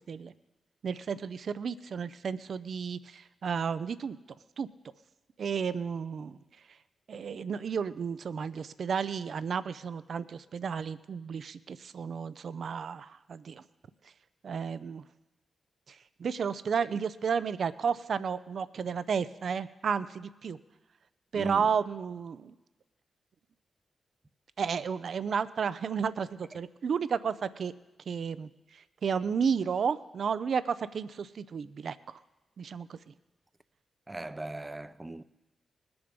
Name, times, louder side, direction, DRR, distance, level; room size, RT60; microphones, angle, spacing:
voice 1, 0.8-4.2 4.6-4.7 5.4-6.4 7.1-13.6 14.4-15.0 15.9-20.6 21.3-22.5 24.6-27.7 28.1-32.2 32.6-33.1, right 6 dB, 65° right, 0.5 m, -32 dB
voice 2, 21.3-21.7 34.1-35.2, right 2 dB, 25° right, 0.6 m, -38 dB
20.0 x 7.0 x 5.2 m
supercardioid pair, 45°, 0 cm